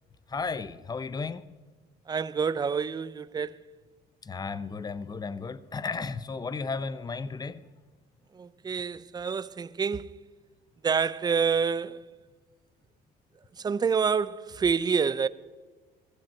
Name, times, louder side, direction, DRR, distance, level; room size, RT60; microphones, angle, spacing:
voice 1, 0.3-1.5 4.2-7.6, left 4 dB, 25° left, 0.7 m, -34 dB
voice 2, 2.1-3.6 8.4-10.1 10.8-12.1 13.6-15.3, right 6 dB, 25° right, 0.5 m, -27 dB
16.0 x 15.0 x 4.4 m
cardioid pair, 110°, 17 cm